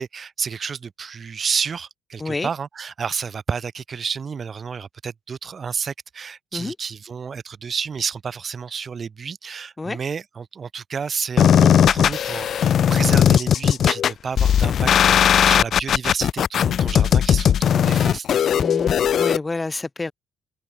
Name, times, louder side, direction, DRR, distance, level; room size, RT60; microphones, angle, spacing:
voice 1, 0.0-18.2, right 6 dB, 45° right, 6.7 m, -30 dB
sound 1, 11.4-19.4, left 9 dB, 55° left, 0.3 m, -17 dB
voice 2, 18.6-20.1, left 3 dB, 25° left, 1.6 m, -28 dB
hypercardioid pair, 50°, 0 cm